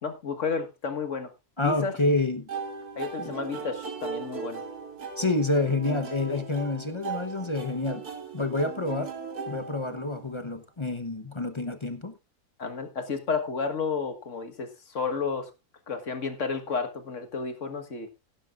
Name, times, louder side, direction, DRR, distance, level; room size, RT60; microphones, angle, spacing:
voice 1, 0.0-1.3 1.6-1.9 3.0-4.6 12.6-15.5 15.9-18.1, left 5 dB, 55° left, 1.8 m, -31 dB
voice 2, 1.6-2.5 3.2-3.4 5.2-8.0 8.3-9.1 9.5-12.1, left 2 dB, 25° left, 0.8 m, -28 dB
sound 1, 2.5-10.4, right 5 dB, 90° right, 2.8 m, -38 dB
16.0 x 11.5 x 2.5 m
omnidirectional pair, 1.6 m